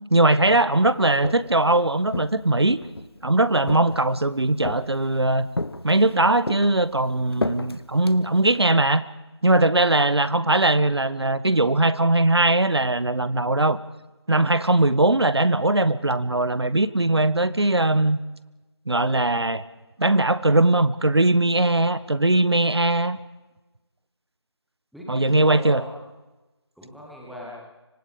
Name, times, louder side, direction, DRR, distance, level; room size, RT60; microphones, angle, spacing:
voice 1, 0.1-2.8 3.2-5.5 5.8-9.0 9.4-13.8 14.3-18.2 18.9-19.6 20.0-23.2 25.1-25.8, right 2 dB, 65° right, 15 dB, 1.3 m, -20 dB
Walk footsteps, 1.0-1.6 2.1-3.1 3.7-4.2 4.7-5.2 5.6-6.2 6.5-8.7, left 2 dB, 60° left, 1.3 m, -32 dB
voice 2, 24.9-25.9 26.7-27.6, equal, ahead, -6 dB, 1.1 m, -39 dB
26.5 x 25.5 x 5.2 m, 1.1 s
figure-of-eight pair, 170°, 14 cm